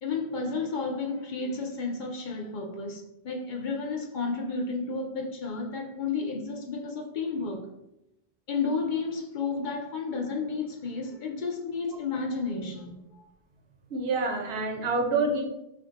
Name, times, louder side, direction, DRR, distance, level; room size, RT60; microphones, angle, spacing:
voice 1, 0.0-7.7 8.5-13.3, left 4 dB, 60° left, 0.6 m, -32 dB
voice 2, 13.9-15.4, right 3 dB, 80° right, 0.9 m, -27 dB
2.5 x 2.3 x 3.7 m
omnidirectional pair, 1.0 m